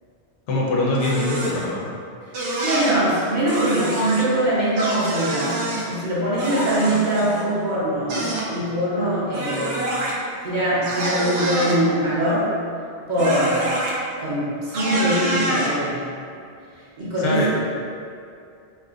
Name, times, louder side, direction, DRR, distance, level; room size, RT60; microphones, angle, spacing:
voice 1, 0.5-1.9 17.2-17.5, left 2 dB, 85° left, -3 dB, 0.9 m, -23 dB
sound 1, 1.0-1.6 2.3-2.9 3.5-4.2 4.8-5.8 6.4-7.4 8.1-8.5 9.3-10.1 10.8-11.8 13.2-13.9 14.7-15.7, right 1 dB, 85° right, 1.0 m, -26 dB
voice 2, 2.6-9.9 10.4-12.5 13.1-13.7 14.2-16.1 17.0-17.5, right 1 dB, 50° right, -8 dB, 0.7 m, -22 dB
4.3 x 2.3 x 2.4 m, 2.4 s
omnidirectional pair, 1.2 m